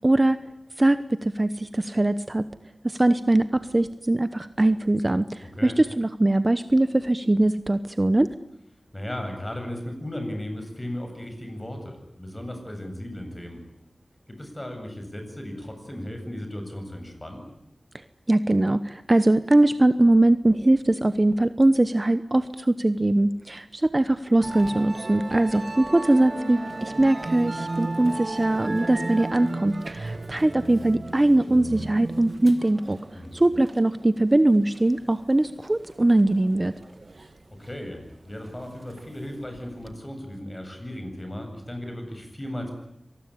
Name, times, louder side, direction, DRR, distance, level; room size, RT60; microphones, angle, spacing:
voice 1, 0.0-0.4 0.8-2.5 2.8-8.3 18.3-33.0 33.3-36.7, right 2 dB, 30° right, 12 dB, 1.0 m, -21 dB
voice 2, 5.4-5.8 8.9-13.6 14.3-17.4 33.1-33.5 37.5-42.7, left 1 dB, 20° left, 5 dB, 7.8 m, -36 dB
Musical instrument, 24.4-39.9, right 2 dB, 50° right, 1.8 m, -36 dB
25.5 x 20.0 x 9.9 m, 0.78 s
wide cardioid pair, 65°, 0 cm